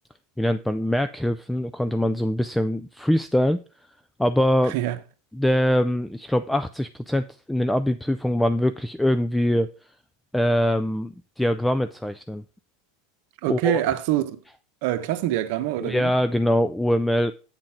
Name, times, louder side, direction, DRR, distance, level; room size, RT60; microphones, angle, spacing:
voice 1, 0.4-3.6 4.2-4.7 5.3-9.7 10.3-12.4 13.5-13.8 15.8-17.3, equal, 5° left, 0.4 m, -23 dB
voice 2, 13.4-14.4 14.8-16.1, right 13 dB, 65° right, 1.0 m, -25 dB
8.8 x 3.9 x 5.8 m
supercardioid pair, 135°, 0 cm